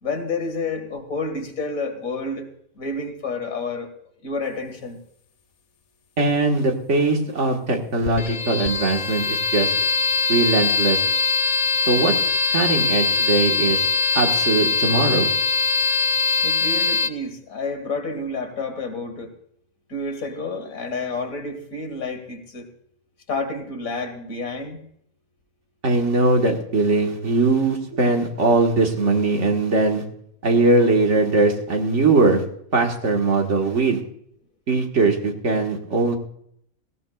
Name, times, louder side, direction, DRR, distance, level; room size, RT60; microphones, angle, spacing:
voice 1, 0.0-2.5 2.8-3.9 4.2-5.0 16.4-19.3 19.9-22.7 23.3-24.8, left 3 dB, 90° left, 6 dB, 2.3 m, -29 dB
voice 2, 6.2-9.7 10.3-11.0 11.9-12.1 12.5-13.8 14.2-15.3 25.8-30.0 30.4-32.4 32.7-34.0 34.7-36.2, right 3 dB, 60° right, 2 dB, 1.9 m, -20 dB
sound 1, 8.0-17.1, left 4 dB, 50° left, 0.5 m, -22 dB
18.5 x 16.0 x 2.4 m, 0.68 s
omnidirectional pair, 1.4 m